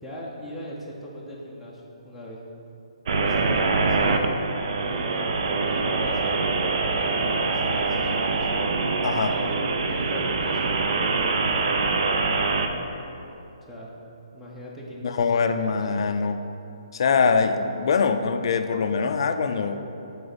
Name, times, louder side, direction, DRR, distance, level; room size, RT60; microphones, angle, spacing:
voice 1, 0.0-2.4 3.1-4.3 4.8-8.5 9.3-11.3 13.6-13.9 14.3-15.7, equal, ahead, -7 dB, 0.6 m, -39 dB
sound 1, 3.1-12.7, right 4 dB, 55° right, 0.5 m, -24 dB
voice 2, 9.0-9.3 15.0-16.4 16.9-19.8, left 5 dB, 50° left, 8 dB, 0.4 m, -23 dB
6.6 x 4.4 x 4.0 m, 2.9 s
hypercardioid pair, 165°, 3 cm